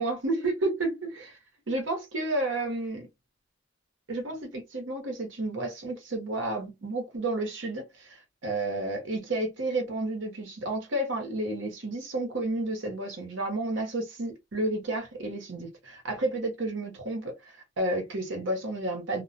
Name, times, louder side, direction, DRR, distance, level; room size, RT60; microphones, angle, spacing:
voice 1, 0.0-1.3 1.7-3.1 4.1-8.1 8.4-17.3 17.8-19.2, right 2 dB, 85° right, 0.9 m, -31 dB
2.3 x 2.1 x 2.5 m
head